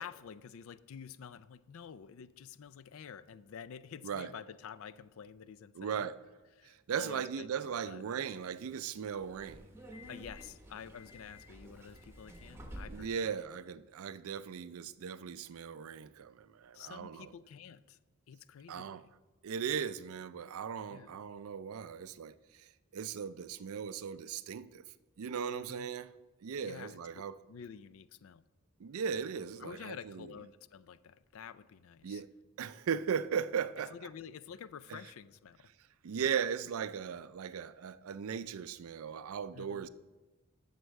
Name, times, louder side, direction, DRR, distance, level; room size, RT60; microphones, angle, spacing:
voice 1, 0.0-6.1 6.6-8.0 10.1-13.1 16.7-18.0 18.3-19.1 20.9-21.2 25.5-25.9 26.6-27.0 27.5-28.4 29.6-32.2 33.9-35.7 39.5-39.9, left 7 dB, 70° left, 0.4 m, -49 dB
voice 2, 5.8-6.2 6.6-9.7 12.9-17.3 18.7-19.0 19.4-24.8 25.2-26.1 26.4-27.4 28.8-30.3 32.0-32.3 32.6-33.9 34.9-35.0 36.0-39.9, right 7 dB, 75° right, 0.4 m, -38 dB
Subway metro underground, 9.1-13.3, equal, 10° right, 0.9 m, -50 dB
7.9 x 6.7 x 6.3 m
head